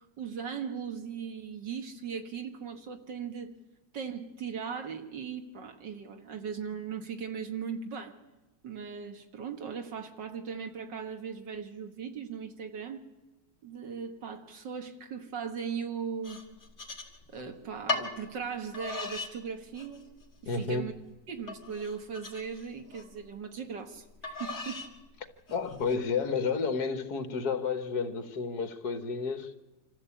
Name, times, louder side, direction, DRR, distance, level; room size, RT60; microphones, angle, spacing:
voice 1, 0.0-3.6 3.9-8.2 8.6-13.0 13.6-16.4 17.3-20.1 20.4-20.9 21.3-24.9, right 6 dB, 80° right, 2.5 m, -38 dB
sound 1, 16.2-17.4 17.9-18.1 18.7-19.3 19.7-20.3 20.7-20.8 21.5-23.1 24.2-24.9 25.5-26.0, left 3 dB, 40° left, 2.4 m, -37 dB
voice 2, 20.5-20.9 25.5-29.5, left 5 dB, 60° left, 1.8 m, -31 dB
26.0 x 14.0 x 8.5 m
omnidirectional pair, 1.9 m